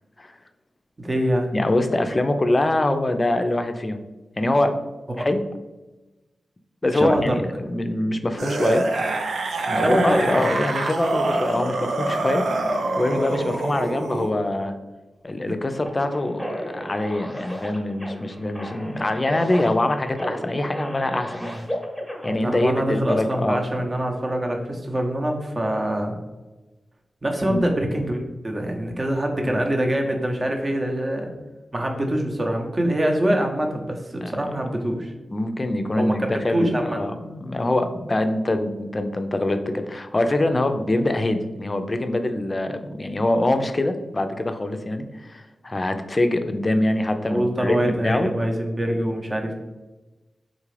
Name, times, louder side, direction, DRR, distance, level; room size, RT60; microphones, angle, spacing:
voice 1, 1.0-1.5 5.2-5.3 6.9-7.4 9.7-10.5 21.4-21.6 22.3-26.2 27.2-28.2 28.4-31.3 31.7-35.1 35.9-37.0 47.3-49.5, right 1 dB, 40° right, 2 dB, 0.7 m, -24 dB
voice 2, 1.5-4.0 4.4-4.8 5.2-5.4 6.8-8.9 9.7-12.6 13.0-14.7 15.2-21.6 22.2-23.6 27.5-27.6 34.2-34.5 35.3-48.3, left 1 dB, 40° left, 7 dB, 0.4 m, -24 dB
Misc Zombie, 8.4-14.3 15.5-15.6, right 2 dB, 80° right, 0.4 m, -25 dB
sound 1, 15.9-22.4, equal, ahead, 0.9 m, -34 dB
3.8 x 2.4 x 3.2 m, 1.1 s
cardioid pair, 40°, 0 cm